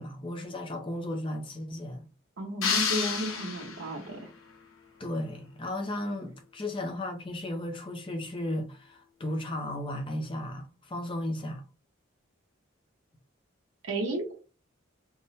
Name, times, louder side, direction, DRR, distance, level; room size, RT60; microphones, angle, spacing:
voice 1, 0.0-2.1 5.0-11.6, left 1 dB, 25° left, 0.6 m, -35 dB
voice 2, 2.4-4.2 13.8-14.3, right 1 dB, 85° right, 1.1 m, -33 dB
sound 1, 2.6-4.2, left 6 dB, 80° left, 1.0 m, -30 dB
3.5 x 2.1 x 4.1 m
head